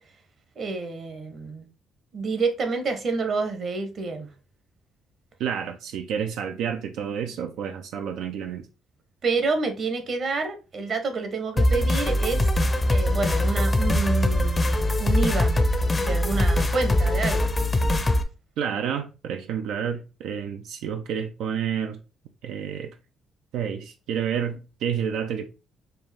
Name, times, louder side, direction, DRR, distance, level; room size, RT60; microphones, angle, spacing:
voice 1, 0.6-1.7 2.1-4.3 9.2-12.5 12.9-15.7 16.0-17.5, right 4 dB, 55° right, 1.0 m, -28 dB
voice 2, 5.4-8.7 18.6-22.0 22.4-22.9 23.5-25.5, right 8 dB, 90° right, 0.4 m, -29 dB
sound 1, 11.6-18.2, left 1 dB, 25° left, 0.6 m, -22 dB
4.4 x 2.4 x 3.4 m
cardioid pair, 90°, 0 cm